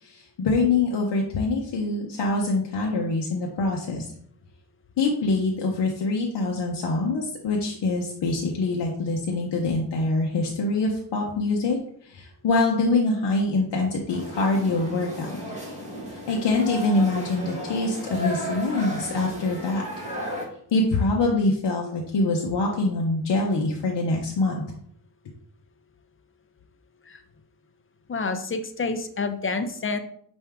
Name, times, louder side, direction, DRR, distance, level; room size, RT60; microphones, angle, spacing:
voice 1, 0.0-4.1 5.0-11.8 12.0-15.4 16.3-19.8 20.7-24.6, left 3 dB, 70° left, -1 dB, 0.8 m, -24 dB
sound 1, 14.1-20.5, equal, 15° right, 1.9 m, -34 dB
voice 2, 28.1-30.0, left 4 dB, 30° left, 7 dB, 0.6 m, -28 dB
5.5 x 2.7 x 3.5 m, 0.64 s
cardioid pair, 65°, 44 cm